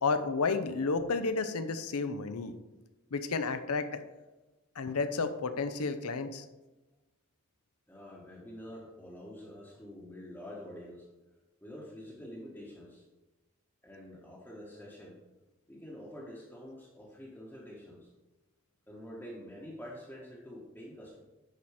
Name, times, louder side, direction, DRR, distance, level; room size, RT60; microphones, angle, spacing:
voice 1, 0.0-2.5 3.1-4.0 4.8-6.4, left 4 dB, 90° left, 10 dB, 0.7 m, -31 dB
voice 2, 7.9-11.1 11.6-13.0 13.8-15.2 15.7-18.1 18.9-21.2, equal, 10° left, -5 dB, 1.1 m, -47 dB
10.0 x 4.3 x 4.8 m, 1.1 s
head